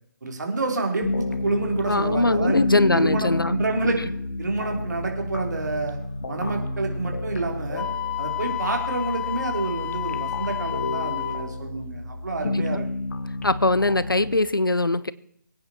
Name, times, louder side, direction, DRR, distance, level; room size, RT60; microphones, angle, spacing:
voice 1, 0.2-2.6 2.9-4.0 4.4-6.0 6.3-7.9 8.2-12.9, right 3 dB, 60° right, 2 dB, 3.8 m, -28 dB
sound 1, 1.0-14.3, left 2 dB, 50° left, 1.4 m, -30 dB
voice 2, 1.9-3.6 12.4-12.8 13.4-15.1, left 2 dB, 85° left, 18 dB, 0.8 m, -22 dB
Wind instrument woodwind instrument, 7.8-11.5, left 14 dB, 10° left, 0.5 m, -30 dB
24.0 x 9.3 x 4.5 m, 0.70 s
figure-of-eight pair, 140°, 11 cm